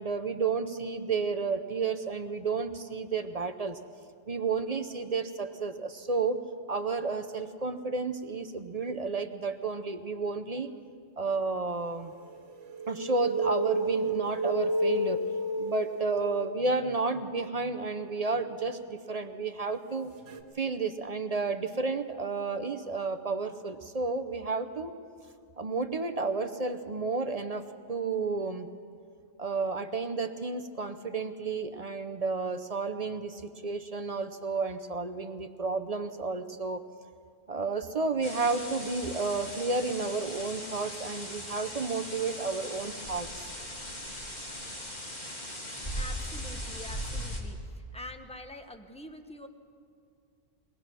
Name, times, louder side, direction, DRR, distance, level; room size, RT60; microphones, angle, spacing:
voice 1, 0.0-3.8 4.3-6.4 6.7-10.7 11.2-12.1 12.9-15.2 15.6-20.1 20.6-25.0 25.6-28.7 29.4-36.8 37.5-43.5, right 4 dB, 35° right, 7 dB, 0.7 m, -31 dB
sound 1, 12.3-17.0 20.3-20.4, right 1 dB, 70° right, 1.4 m, -31 dB
sound 2, 38.2-47.4, equal, 35° left, 2.5 m, -39 dB
voice 2, 46.0-47.6 47.9-49.5, left 1 dB, 5° left, 6 dB, 1.0 m, -45 dB
22.5 x 18.5 x 6.2 m, 2.2 s
omnidirectional pair, 1.3 m